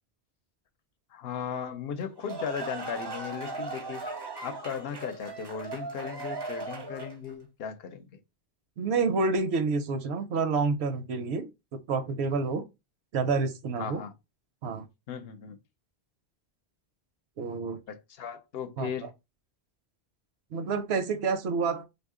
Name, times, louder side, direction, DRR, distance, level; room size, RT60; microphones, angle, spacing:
voice 1, 1.1-4.0 4.4-8.1 13.8-14.1 15.1-15.6 17.9-19.1, left 7 dB, 70° left, 0.8 m, -36 dB
sound 1, 2.0-7.3, right 3 dB, 35° right, 0.4 m, -38 dB
voice 2, 8.8-12.6 13.1-14.0 14.6-14.9 17.4-17.8 18.8-18.9 20.5-21.9, right 4 dB, 85° right, 0.8 m, -28 dB
2.7 x 2.4 x 3.6 m
omnidirectional pair, 1.1 m